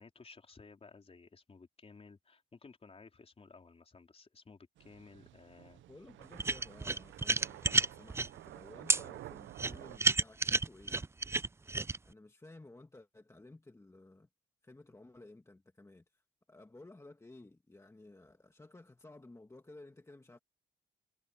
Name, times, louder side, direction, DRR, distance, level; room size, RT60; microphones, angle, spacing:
voice 1, 0.0-5.8, left 4 dB, 30° left, 4.0 m, -56 dB
sound 1, 4.8-10.0, right 14 dB, 75° right, 0.6 m, -51 dB
voice 2, 5.9-11.1 12.0-14.3 14.6-16.2 16.5-20.4, left 2 dB, 15° left, 1.8 m, -55 dB
sound 2, 6.4-8.3 8.9-9.0 9.6-12.0, right 3 dB, 15° right, 0.4 m, -30 dB
cardioid pair, 90°, 20 cm